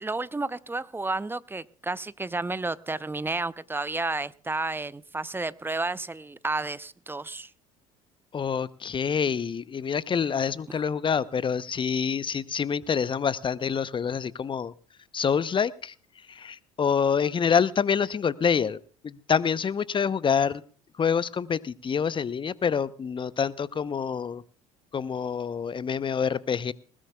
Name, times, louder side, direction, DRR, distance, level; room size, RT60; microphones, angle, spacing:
voice 1, 0.0-7.5, right 3 dB, 10° right, 18 dB, 0.6 m, -31 dB
voice 2, 8.3-14.7 15.1-15.9 16.3-20.6 21.0-24.4 24.9-26.7, left 6 dB, 25° left, 18 dB, 0.7 m, -27 dB
20.0 x 20.0 x 2.3 m, 0.42 s
figure-of-eight pair, 60°, 18 cm